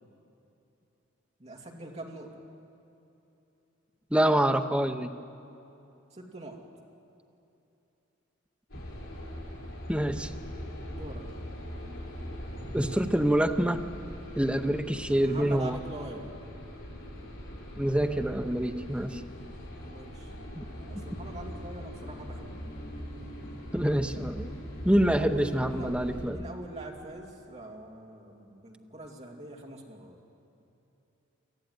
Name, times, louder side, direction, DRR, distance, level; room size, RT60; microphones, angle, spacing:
voice 1, 1.4-2.4 6.1-6.6 10.9-11.3 15.2-16.3 19.8-20.3 20.8-22.6 24.1-24.5 25.0-30.2 30.6-30.7, right 1 dB, 30° right, -1 dB, 2.5 m, -43 dB
voice 2, 4.1-5.1 9.9-10.3 12.7-13.8 14.4-15.8 17.8-19.2 20.6-20.7 23.7-24.5 24.8-26.4, right 1 dB, 5° right, 5 dB, 0.8 m, -26 dB
sound 1, 8.7-26.3, equal, 70° left, 6.2 m, -41 dB
25.0 x 14.5 x 9.4 m, 2.9 s
head